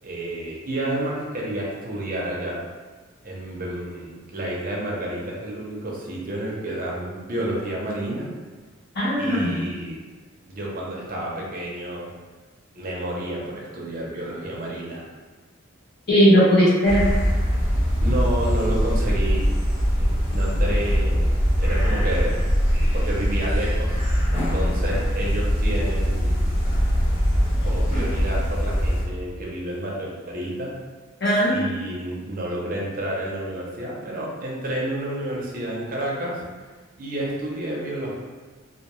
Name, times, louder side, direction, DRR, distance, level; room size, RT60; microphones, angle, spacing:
voice 1, 0.0-2.6 3.2-8.3 9.2-10.0 10.5-12.1 12.7-15.1 18.0-19.4 20.0-21.3 21.6-22.4 22.9-23.9 24.3-26.4 27.6-30.7 31.5-36.4 37.0-38.2, right 1 dB, 40° right, -4 dB, 0.5 m, -30 dB
voice 2, 9.0-9.6 16.1-17.0 31.2-31.7, equal, 50° left, -9 dB, 0.9 m, -18 dB
sound 1, 16.8-29.0, equal, 80° left, 0.8 m, -22 dB
2.3 x 2.2 x 2.9 m, 1.3 s
head